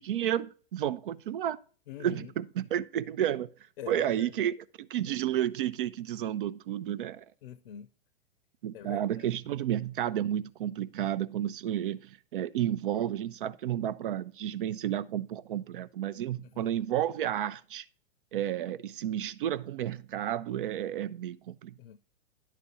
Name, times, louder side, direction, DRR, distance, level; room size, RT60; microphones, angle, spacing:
voice 1, 0.0-1.6 2.0-3.5 3.9-7.2 8.6-17.8 18.3-21.7, right 11 dB, 60° right, 0.6 m, -31 dB
voice 2, 1.9-2.3 3.8-4.3 7.4-7.9 8.7-9.0 16.5-16.7 21.8-22.0, left 10 dB, 65° left, 0.6 m, -44 dB
10.5 x 4.3 x 5.4 m
hypercardioid pair, 110°, 30 cm